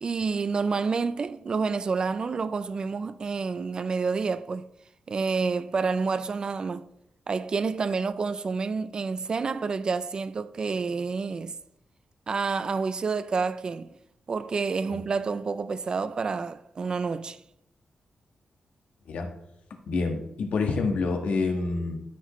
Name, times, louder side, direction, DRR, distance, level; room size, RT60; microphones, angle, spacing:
voice 1, 0.0-4.7 5.1-6.9 7.3-11.6 12.3-14.0 14.3-17.4, right 4 dB, 35° right, 0.3 m, -29 dB
voice 2, 19.9-22.0, left 3 dB, 80° left, 1.4 m, -27 dB
13.0 x 6.1 x 3.1 m
wide cardioid pair, 175°, 2 cm